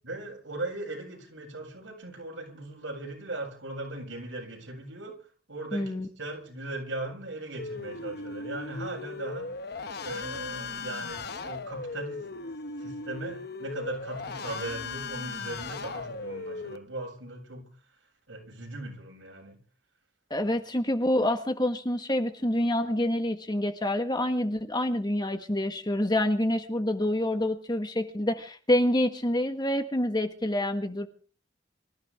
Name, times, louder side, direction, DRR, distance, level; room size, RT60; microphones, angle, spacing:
voice 1, 0.0-5.2 5.5-9.5 10.0-12.2 12.8-17.7 18.3-19.6, right 2 dB, 70° right, 7.7 m, -38 dB
voice 2, 5.7-6.1 20.3-31.1, left 1 dB, 20° left, 1.6 m, -27 dB
sound 1, 7.6-16.8, left 3 dB, 55° left, 1.1 m, -38 dB
25.0 x 15.0 x 3.7 m
head